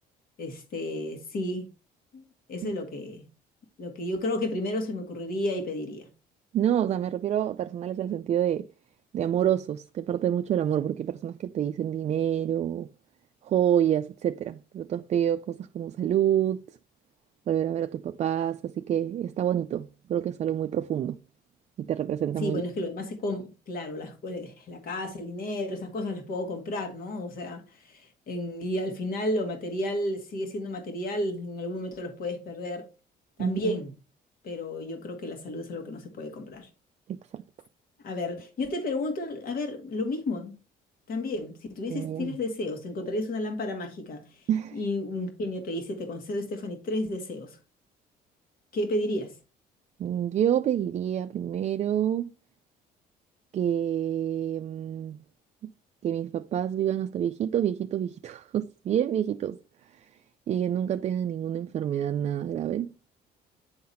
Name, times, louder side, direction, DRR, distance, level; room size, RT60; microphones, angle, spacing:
voice 1, 0.4-1.7 2.1-3.3 3.8-6.1 22.4-32.9 33.4-33.9 34.4-36.7 38.0-40.6 41.1-47.6 48.7-49.4, left 1 dB, 60° left, 1.8 m, -32 dB
voice 2, 6.5-8.7 9.1-12.9 13.4-16.6 17.5-21.2 21.8-22.6 33.4-33.7 37.1-37.4 41.9-42.4 44.5-44.8 50.0-52.3 53.5-55.2 56.0-59.6 60.5-62.9, right 10 dB, 40° right, 0.4 m, -27 dB
9.4 x 4.0 x 4.2 m
cardioid pair, 110°, 17 cm